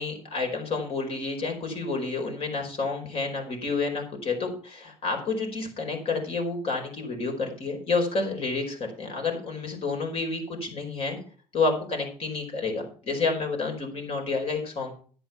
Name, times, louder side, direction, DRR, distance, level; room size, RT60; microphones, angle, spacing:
voice 1, 0.0-11.2 11.5-14.9, left 3 dB, 50° left, 2 dB, 4.8 m, -29 dB
10.5 x 8.2 x 5.8 m, 0.42 s
hypercardioid pair, 75°, 13 cm